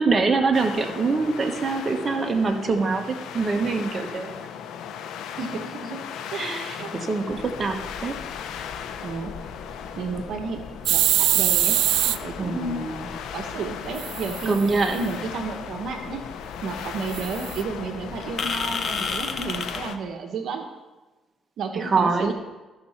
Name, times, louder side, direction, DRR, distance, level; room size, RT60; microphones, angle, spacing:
voice 1, 0.0-3.0 3.3-4.3 6.3-6.7 6.9-8.2 12.4-13.1 14.5-15.0 21.7-22.3, right 4 dB, 35° right, 3 dB, 1.1 m, -24 dB
sound 1, 0.5-20.0, left 8 dB, 85° left, 0.6 m, -37 dB
voice 2, 5.4-6.0 6.3-6.9 9.0-9.3 10.0-10.6 10.9-11.8 12.0-12.9 13.3-16.2 16.6-20.7 21.6-22.3, right 4 dB, 70° right, 4 dB, 1.0 m, -32 dB
sound 2, 7.3-19.8, left 5 dB, 50° left, 0.9 m, -37 dB
sound 3, 10.8-12.2 14.0-15.0 17.1-17.6, right 13 dB, 90° right, 0.3 m, -23 dB
13.5 x 5.8 x 4.2 m, 1.2 s
cardioid pair, 90°, 0 cm